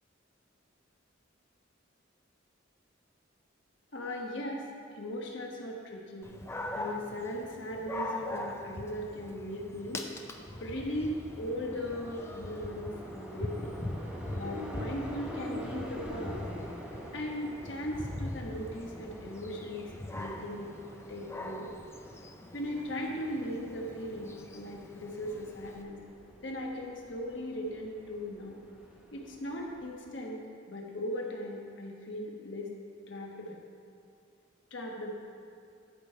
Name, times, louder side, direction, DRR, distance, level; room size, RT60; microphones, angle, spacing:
voice 1, 3.9-4.7 4.9-6.3 6.7-10.0 10.6-13.7 14.3-16.4 17.1-20.7 21.1-21.7 22.5-26.0 26.4-28.6 29.1-30.4 30.7-32.7 33.1-33.6 34.7-35.1, equal, 65° left, 0 dB, 1.2 m, -38 dB
Dog, 6.2-25.8, left 1 dB, 15° left, 0.5 m, -42 dB
sound 1, 10.1-29.9, equal, 5° right, 0.9 m, -47 dB
12.0 x 5.4 x 4.5 m, 2.5 s
head